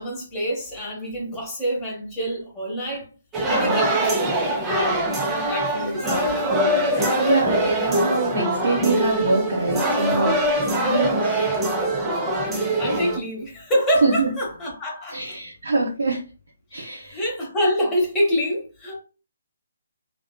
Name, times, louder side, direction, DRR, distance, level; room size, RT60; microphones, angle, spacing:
voice 1, 0.0-3.1 3.5-4.3 4.7-7.5 12.4-15.4 17.1-19.0, equal, 15° left, 0.9 m, -27 dB
sound 1, 3.3-13.2, right 1 dB, 15° right, 0.5 m, -23 dB
voice 2, 3.5-3.9 7.2-10.4 10.8-11.4 12.6-12.7 14.0-14.3 15.1-16.2 16.7-17.2, right 3 dB, 65° right, 0.6 m, -24 dB
2.6 x 2.1 x 2.2 m
figure-of-eight pair, 140°, 0 cm